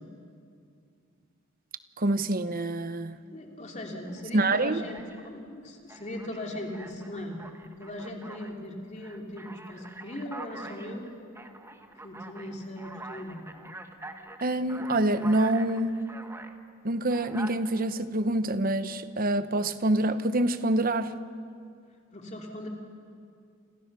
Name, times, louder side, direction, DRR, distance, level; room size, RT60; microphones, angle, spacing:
voice 1, 2.0-3.2 4.3-4.8 14.4-16.0 16.8-21.1, right 1 dB, 40° right, 1.0 m, -26 dB
voice 2, 3.3-7.4 7.8-11.1 12.0-13.4 22.1-22.7, left 1 dB, 35° left, 3.1 m, -39 dB
Alarm, 4.1-4.2 4.7-5.4 5.9-8.6 9.0-16.6 17.1-17.5, right 2 dB, 10° right, 1.2 m, -45 dB
29.0 x 27.5 x 6.8 m
head